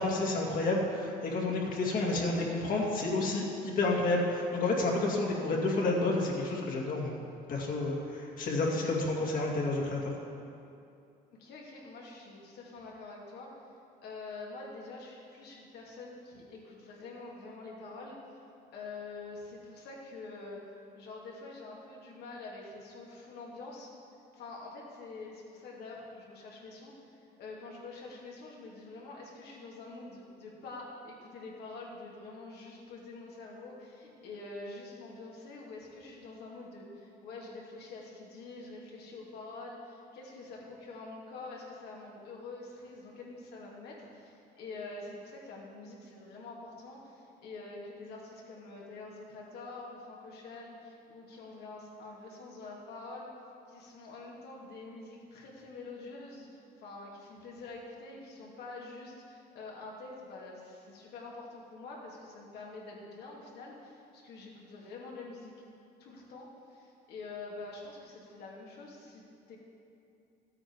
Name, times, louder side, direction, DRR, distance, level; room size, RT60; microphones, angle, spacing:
voice 1, 0.0-7.1 7.5-10.2, left 2 dB, 55° left, -2 dB, 2.3 m, -30 dB
voice 2, 11.3-13.5 14.0-18.2 18.7-20.6 20.9-23.9 24.3-53.3 53.7-65.5 66.0-69.6, left 3 dB, 75° left, -3 dB, 2.6 m, -46 dB
14.0 x 8.6 x 4.8 m, 2.6 s
cardioid pair, 110°, 17 cm